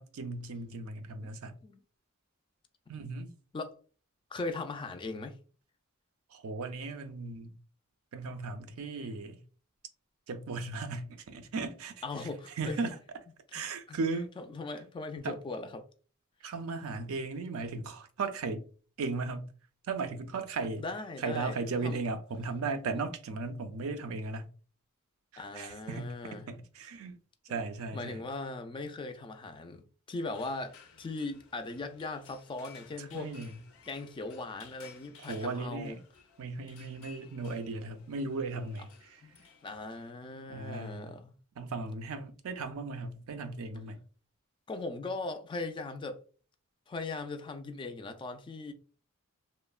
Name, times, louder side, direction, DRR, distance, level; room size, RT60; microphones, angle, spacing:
voice 1, 0.0-1.6 2.9-3.3 6.3-7.6 8.1-9.4 10.3-12.0 12.6-13.0 13.5-14.3 15.2-15.4 16.4-18.6 19.0-19.5 19.9-20.9 21.2-24.5 25.3-27.2 27.5-28.2 33.0-33.6 35.2-36.0 36.4-39.2 40.5-41.2 41.6-44.0, right 3 dB, 85° right, 0.4 m, -36 dB
voice 2, 4.3-5.4 12.0-12.9 13.9-14.0 14.4-15.8 20.8-22.0 25.4-26.5 27.5-27.6 27.9-33.3 33.9-36.0 39.2-41.3 44.7-46.2 46.9-48.7, left 3 dB, 25° left, 0.3 m, -39 dB
sound 1, 30.3-40.1, left 6 dB, 85° left, 0.5 m, -57 dB
3.0 x 2.0 x 2.3 m
head